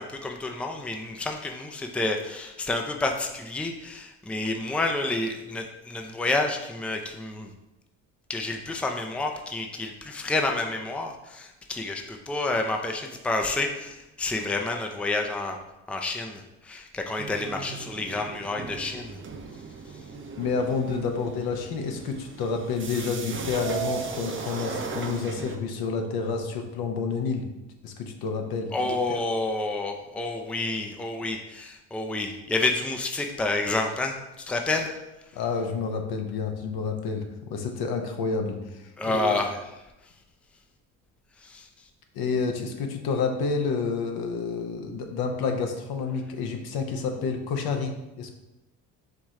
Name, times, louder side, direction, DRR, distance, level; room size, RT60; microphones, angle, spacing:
voice 1, 0.0-7.5 8.3-15.6 15.9-19.2 28.7-35.0 39.0-39.6 41.4-41.7, left 2 dB, 5° left, 3 dB, 0.5 m, -29 dB
sound 1, 17.2-25.6, right 5 dB, 30° right, 0.7 m, -37 dB
voice 2, 20.4-27.5 27.8-29.0 35.3-39.4 42.1-48.3, left 5 dB, 65° left, 4 dB, 0.8 m, -29 dB
4.7 x 3.0 x 3.7 m, 0.96 s
hypercardioid pair, 60°, 39 cm